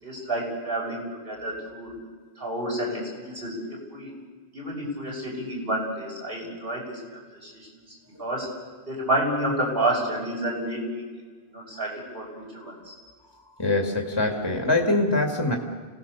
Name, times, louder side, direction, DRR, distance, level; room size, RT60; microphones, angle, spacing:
voice 1, 0.0-1.9 2.4-4.1 4.5-7.7 8.2-8.5 8.9-11.0 11.5-12.9, right 1 dB, 60° right, -2 dB, 7.1 m, -30 dB
voice 2, 13.6-15.6, left 2 dB, 25° left, 2 dB, 2.4 m, -23 dB
29.5 x 18.5 x 7.0 m, 1.5 s
omnidirectional pair, 1.1 m